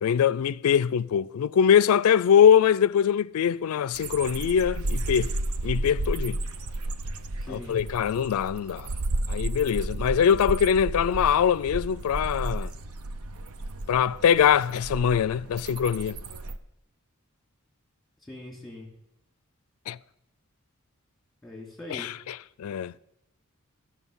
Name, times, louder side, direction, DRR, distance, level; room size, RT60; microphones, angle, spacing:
voice 1, 0.0-5.3 5.6-6.4 7.5-8.9 9.3-12.7 13.9-16.2 19.9-20.0 21.9-22.9, left 8 dB, 80° left, 0.3 m, -23 dB
sound 1, 3.9-16.6, right 2 dB, 85° right, 0.6 m, -33 dB
voice 2, 7.4-7.8 18.3-18.9 21.4-22.1, left 1 dB, ahead, 2.9 m, -41 dB
13.5 x 6.4 x 5.4 m
head